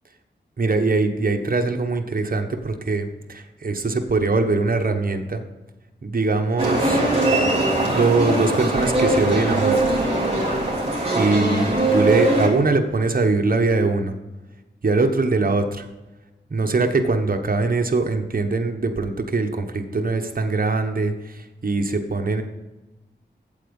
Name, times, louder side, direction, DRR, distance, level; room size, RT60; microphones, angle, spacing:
voice 1, 0.6-5.4 6.0-7.0 7.9-10.0 11.1-14.1 14.8-15.9 16.5-22.4, right 3 dB, 50° right, 5 dB, 1.1 m, -22 dB
sound 1, 6.6-12.5, right 1 dB, 30° right, 3.4 m, -21 dB
8.6 x 7.9 x 5.3 m, 1.1 s
wide cardioid pair, 60°, 19 cm